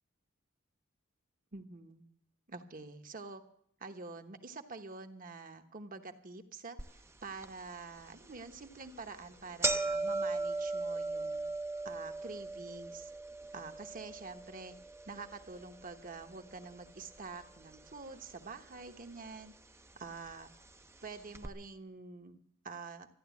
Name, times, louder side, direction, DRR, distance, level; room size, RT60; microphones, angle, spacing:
voice 1, 1.5-2.0 2.5-3.4 3.8-11.4 11.8-13.1 13.5-14.8 15.0-19.5 20.0-20.5 21.0-22.4 22.6-23.1, right 4 dB, 45° right, 7 dB, 1.2 m, -47 dB
sound 1, 6.8-6.9 7.4-7.5 8.3-8.5 8.9-9.0 9.2-17.4 17.7-18.5 19.3-19.4 20.3-20.4 20.7-20.8 21.3-21.5, right 3 dB, 15° right, 0.6 m, -38 dB
14.0 x 11.0 x 8.3 m, 0.69 s
head